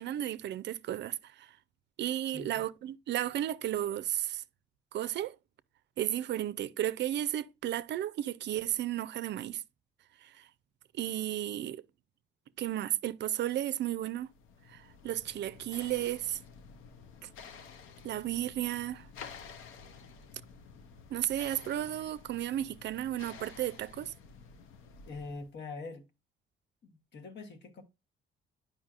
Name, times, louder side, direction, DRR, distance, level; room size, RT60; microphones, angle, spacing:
voice 1, 0.0-1.5 2.0-4.4 4.9-5.3 6.0-9.6 10.2-10.5 10.9-11.8 12.6-14.3 14.7-16.4 18.0-19.1 21.1-24.1, right 12 dB, 60° right, 0.4 m, -33 dB
voice 2, 2.3-2.6 25.1-26.0 26.8-27.8, left 3 dB, 60° left, 1.3 m, -44 dB
sound 1, 14.0-25.5, left 5 dB, 90° left, 0.7 m, -51 dB
8.8 x 5.3 x 2.4 m
cardioid pair, 90°, 20 cm